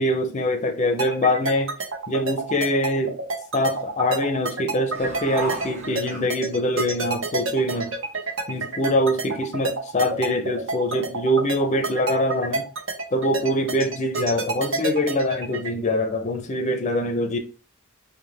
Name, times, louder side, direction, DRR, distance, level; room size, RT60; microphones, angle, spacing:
voice 1, 0.0-1.7 2.1-3.2 3.5-7.9 8.5-12.7 13.1-17.4, left 1 dB, 35° left, 0.5 m, -24 dB
sound 1, 1.0-15.7, right 3 dB, 70° right, 0.9 m, -28 dB
sound 2, 4.9-6.8 7.3-7.4 7.6-8.9, right 2 dB, 35° right, 1.1 m, -36 dB
5.0 x 2.2 x 3.3 m
head